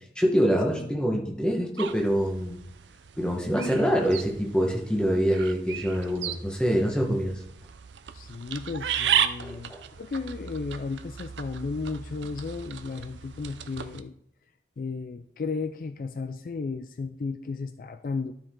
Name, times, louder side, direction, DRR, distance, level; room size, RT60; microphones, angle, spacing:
voice 1, 0.1-2.6 3.2-7.4 9.4-9.8, equal, 5° left, 0 dB, 1.2 m, -25 dB
sound 1, 1.8-14.0, right 9 dB, 90° right, 0.5 m, -34 dB
voice 2, 8.1-14.1 14.8-18.3, left 4 dB, 50° left, 10 dB, 0.3 m, -34 dB
12.0 x 4.8 x 3.7 m, 0.71 s
head